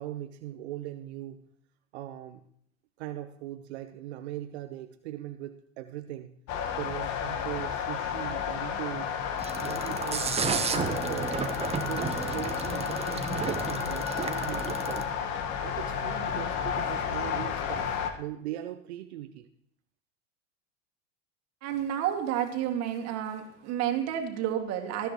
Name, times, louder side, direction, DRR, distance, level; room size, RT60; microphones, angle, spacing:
voice 1, 0.0-1.4 1.9-2.4 3.0-6.4 6.7-9.2 9.6-11.4 11.9-15.1 15.6-19.5, right 13 dB, 60° right, 8 dB, 1.0 m, -40 dB
sound 1, 6.5-18.1, left 7 dB, 45° left, 1.7 m, -32 dB
sound 2, 9.4-15.0, right 5 dB, 15° right, 1.1 m, -32 dB
voice 2, 21.6-25.1, right 10 dB, 40° right, 4 dB, 2.4 m, -30 dB
19.0 x 13.0 x 3.1 m, 0.68 s
figure-of-eight pair, 90°, 38 cm